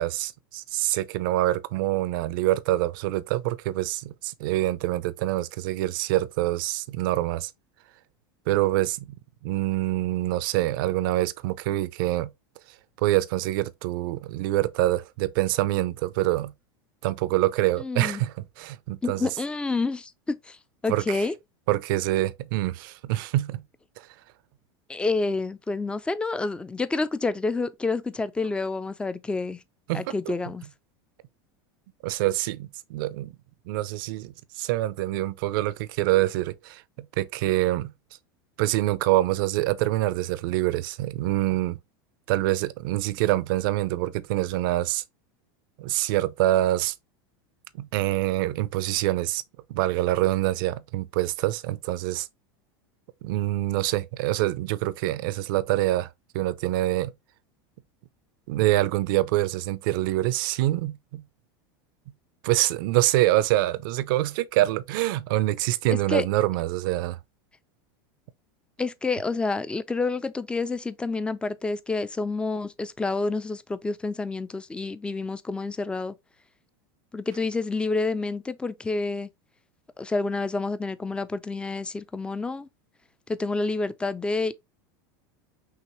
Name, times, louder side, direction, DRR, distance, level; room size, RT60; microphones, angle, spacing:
voice 1, 0.0-7.5 8.5-9.2 9.4-12.3 13.0-16.5 17.0-19.3 20.9-21.3 21.7-23.6 24.0-24.1 29.9-30.3 32.0-33.4 33.7-37.9 38.6-41.8 42.3-45.0 45.8-46.9 47.7-49.4 49.7-52.3 53.2-56.1 56.3-57.1 58.5-61.2 62.4-67.2, right 16 dB, 65° right, 0.6 m, -25 dB
voice 2, 17.8-18.2 19.0-20.6 20.8-21.3 24.9-29.6 29.9-30.7 65.9-66.2 68.8-76.1 77.1-79.3 80.0-82.7 83.3-84.5, left 3 dB, 10° left, 0.4 m, -28 dB
5.7 x 2.9 x 3.1 m
supercardioid pair, 125°, 12 cm